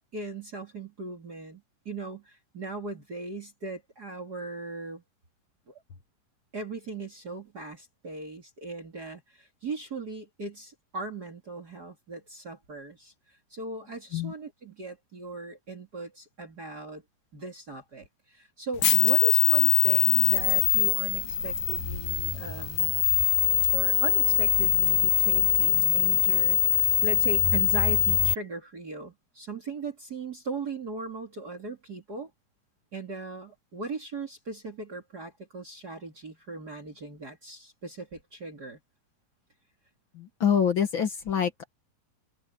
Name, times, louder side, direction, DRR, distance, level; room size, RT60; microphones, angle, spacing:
voice 1, 0.1-5.0 5.7-5.8 6.5-17.0 17.3-23.0 23.7-32.3 32.9-38.8, right 3 dB, 30° right, 2.7 m, -39 dB
sound 1, 18.8-28.3, left 10 dB, 65° left, 2.8 m, -23 dB
voice 2, 40.1-41.7, left 8 dB, 50° left, 1.6 m, -26 dB
open air
omnidirectional pair, 3.9 m